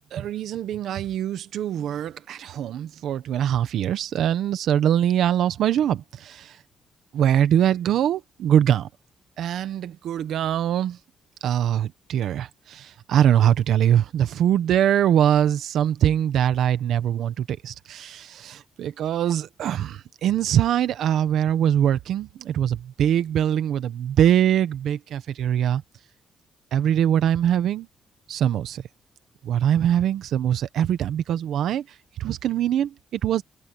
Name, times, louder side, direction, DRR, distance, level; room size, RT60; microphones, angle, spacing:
voice 1, 0.1-6.6 7.1-8.9 9.4-11.0 11.4-25.8 26.7-27.9 28.3-28.8 29.4-31.8 32.2-33.4, right 10 dB, 75° right, 1.0 m, -23 dB
cardioid pair, 180°, 0 cm